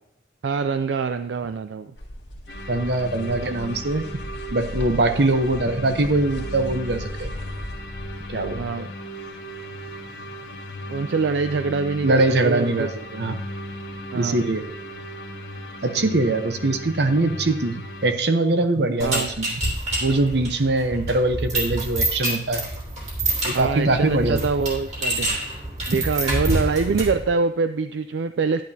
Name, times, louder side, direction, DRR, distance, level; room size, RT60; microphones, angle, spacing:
voice 1, 0.4-1.9 8.5-8.9 10.9-12.9 14.1-14.4 16.0-16.2 19.0-19.3 23.5-25.4 25.9-28.6, right 4 dB, 80° right, 10 dB, 0.4 m, -24 dB
sound 1, 2.0-8.8, equal, 85° left, 1.8 m, -37 dB
sound 2, 2.5-18.1, equal, 60° left, 1.4 m, -36 dB
voice 2, 2.7-4.0 4.5-7.3 8.3-8.6 12.0-13.4 14.1-14.7 15.8-19.6 20.0-22.6 23.4-24.5, right 2 dB, 65° right, 8 dB, 0.9 m, -22 dB
sound 3, 19.0-27.3, right 1 dB, 35° right, 3.0 m, -27 dB
10.5 x 10.5 x 2.8 m, 0.77 s
head